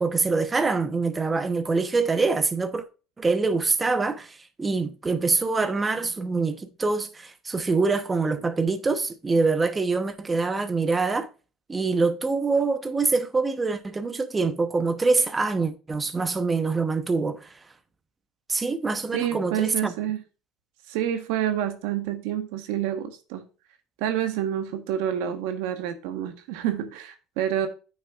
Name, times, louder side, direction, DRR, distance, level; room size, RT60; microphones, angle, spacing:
voice 1, 0.0-2.8 3.2-11.3 11.7-17.5 18.5-19.9, right 4 dB, 15° right, 0.9 m, -25 dB
voice 2, 19.1-20.2 20.9-23.4 24.0-27.7, right 10 dB, 85° right, 1.2 m, -28 dB
9.3 x 6.3 x 2.4 m
cardioid pair, 130°, 0 cm